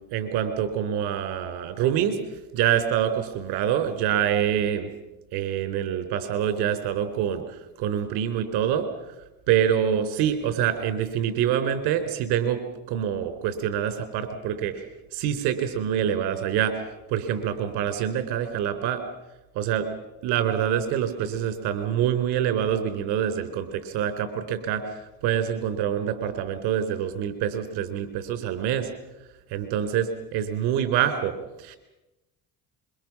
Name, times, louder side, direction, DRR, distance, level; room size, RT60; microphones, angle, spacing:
voice 1, 0.0-2.2 2.5-4.9 5.3-7.4 7.8-8.9 9.5-12.6 12.9-14.8 15.1-16.8 17.1-19.0 19.5-19.9 20.2-24.8 25.2-28.9 29.5-31.8, right 9 dB, 75° right, 9 dB, 3.9 m, -26 dB
26.5 x 23.5 x 6.1 m, 1.0 s
supercardioid pair, 80°, 40 cm